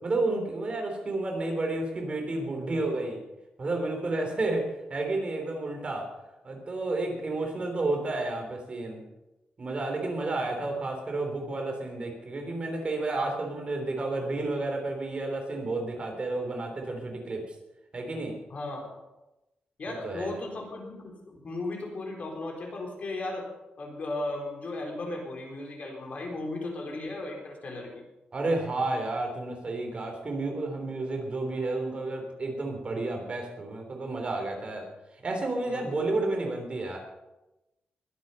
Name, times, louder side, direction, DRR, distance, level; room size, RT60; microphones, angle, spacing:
voice 1, 0.0-3.2 3.6-6.1 6.4-9.0 9.6-17.5 17.9-18.3 19.9-20.4 28.3-34.9 35.2-37.0, right 2 dB, 35° right, 2 dB, 3.4 m, -31 dB
voice 2, 18.5-18.9 19.8-23.5 23.8-28.0 35.7-36.1, left 2 dB, 50° left, 1 dB, 3.9 m, -36 dB
21.5 x 8.5 x 5.6 m, 0.98 s
wide cardioid pair, 135°, 3 cm